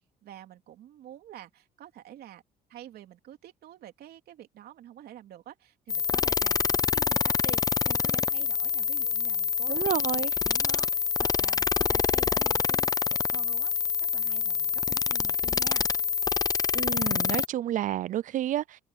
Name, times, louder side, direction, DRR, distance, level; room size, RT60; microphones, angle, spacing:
voice 1, 0.2-2.4 2.7-9.8 10.4-15.9, right 11 dB, 65° right, 3.2 m, -48 dB
sound 1, 5.9-17.5, left 6 dB, 20° left, 0.5 m, -26 dB
voice 2, 9.7-10.3 16.7-18.8, right 12 dB, 50° right, 0.4 m, -30 dB
open air
cardioid pair, 110°, 17 cm